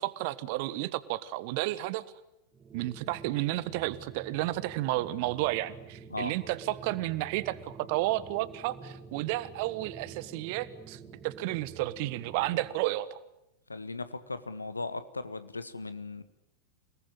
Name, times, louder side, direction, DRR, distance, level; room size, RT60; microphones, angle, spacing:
voice 1, 0.0-2.0 2.7-13.2, right 17 dB, 45° right, 16 dB, 1.4 m, -32 dB
sound 1, 2.5-12.8, right 5 dB, 20° right, 2.5 m, -48 dB
voice 2, 13.7-16.2, left 3 dB, 80° left, 13 dB, 1.6 m, -37 dB
28.5 x 19.0 x 9.9 m, 0.86 s
figure-of-eight pair, 90°, 0 cm